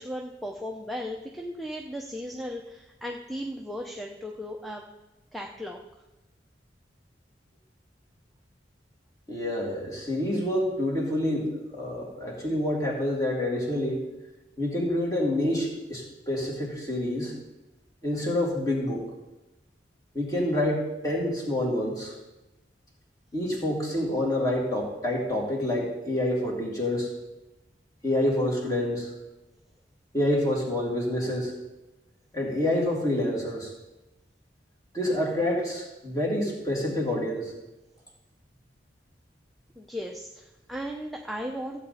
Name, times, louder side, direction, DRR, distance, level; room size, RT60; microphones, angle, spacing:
voice 1, 0.0-4.8 5.3-5.8 39.8-41.8, equal, ahead, 1 dB, 0.6 m, -36 dB
voice 2, 9.3-14.0 14.6-17.3 18.0-19.0 20.1-22.1 23.3-27.1 28.0-29.1 30.1-31.6 32.3-33.7 34.9-37.5, left 1 dB, 20° left, -2 dB, 2.6 m, -27 dB
15.0 x 8.1 x 4.2 m, 1.0 s
head